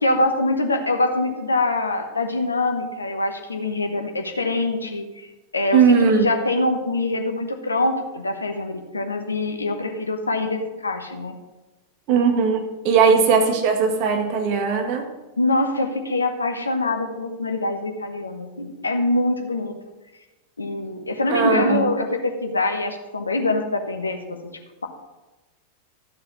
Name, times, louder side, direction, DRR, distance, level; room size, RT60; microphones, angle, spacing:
voice 1, 0.0-5.3 5.5-11.3 13.1-13.2 15.4-19.7 20.6-24.4, left 2 dB, 80° left, 5 dB, 1.3 m, -24 dB
voice 2, 5.7-6.3 12.1-15.1 21.3-21.9, right 6 dB, 45° right, 4 dB, 1.7 m, -19 dB
13.5 x 7.0 x 4.0 m, 1.1 s
figure-of-eight pair, 90°, 0 cm